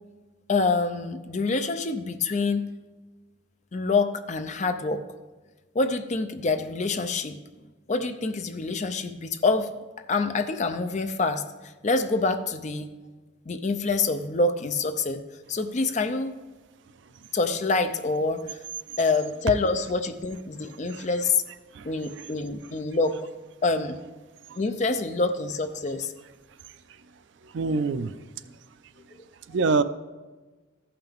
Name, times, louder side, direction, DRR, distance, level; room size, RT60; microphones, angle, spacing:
voice 1, 0.5-2.7 3.7-5.0 5.7-7.4 7.9-12.9 13.5-15.2 15.5-16.4 17.3-18.6 19.0-21.4 21.8-23.3 23.6-24.0 24.6-26.1, left 3 dB, 35° left, 8 dB, 0.5 m, -26 dB
voice 2, 21.7-22.3 24.5-24.6 27.4-28.5 29.5-29.8, right 4 dB, 65° right, 13 dB, 0.4 m, -27 dB
14.0 x 5.8 x 3.5 m, 1.3 s
head